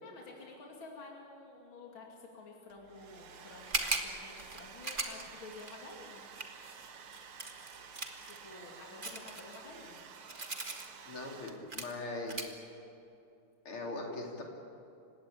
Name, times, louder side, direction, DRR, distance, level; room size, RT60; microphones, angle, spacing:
voice 1, 0.0-6.2 8.2-10.0, left 3 dB, 70° left, -1 dB, 3.4 m, -51 dB
Domestic sounds home sounds, 2.7-11.9, right 6 dB, 90° right, 2.4 m, -52 dB
sound 1, 3.6-8.4 9.0-10.9 11.3-11.4 11.7-11.9 12.3-12.5, right 3 dB, 25° right, 1.8 m, -38 dB
voice 2, 11.1-12.5 13.7-14.4, left 2 dB, 90° left, 0 dB, 4.1 m, -40 dB
29.0 x 17.5 x 8.6 m, 2.7 s
omnidirectional pair, 2.3 m